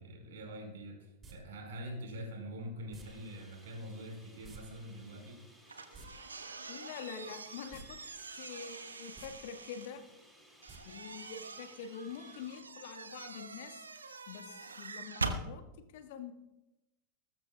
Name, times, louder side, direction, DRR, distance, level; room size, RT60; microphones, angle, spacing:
voice 1, 0.0-5.4, equal, 60° right, 2 dB, 4.7 m, -44 dB
sound 1, 1.2-1.3 2.9-3.0 4.4-4.6 4.9-5.0 5.8-6.1 7.7-7.9 8.2-8.3 9.0-9.3 10.7-10.8 11.1-11.2, right 4 dB, 25° right, 2.8 m, -51 dB
sound 2, 3.0-12.6, equal, ahead, 3.6 m, -61 dB
sound 3, 5.7-9.9 10.6-15.4, right 3 dB, 80° right, 1.0 m, -44 dB
voice 2, 6.7-8.0 8.4-10.0 10.8-13.8 14.3-15.6 15.9-16.3, left 7 dB, 55° left, 7 dB, 1.5 m, -45 dB
20.0 x 13.5 x 2.3 m, 0.95 s
figure-of-eight pair, 90°, 0 cm